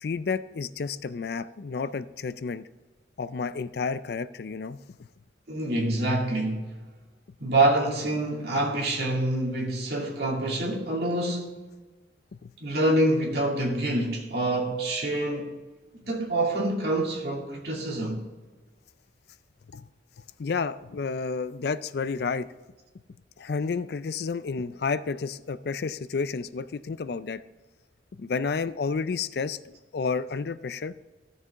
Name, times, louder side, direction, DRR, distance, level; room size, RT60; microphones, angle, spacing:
voice 1, 0.0-2.7 3.2-5.1 12.3-12.5 19.7-19.9 20.4-22.5 23.4-27.4 28.2-30.9, left 5 dB, 55° left, 0.4 m, -31 dB
voice 2, 5.5-6.8 7.4-11.6 12.6-15.6 15.9-18.2, right 1 dB, 60° right, 2.4 m, -26 dB
14.5 x 6.7 x 3.6 m
head